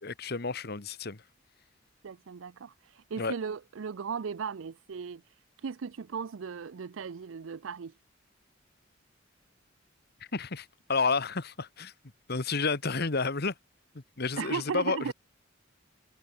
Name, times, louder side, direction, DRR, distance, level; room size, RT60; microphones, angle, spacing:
voice 1, 0.0-1.2 3.2-3.3 10.2-11.9 12.3-13.5 13.9-15.1, left 4 dB, 55° left, 1.4 m, -31 dB
voice 2, 2.0-7.9 14.4-15.1, right 6 dB, 85° right, 0.5 m, -37 dB
head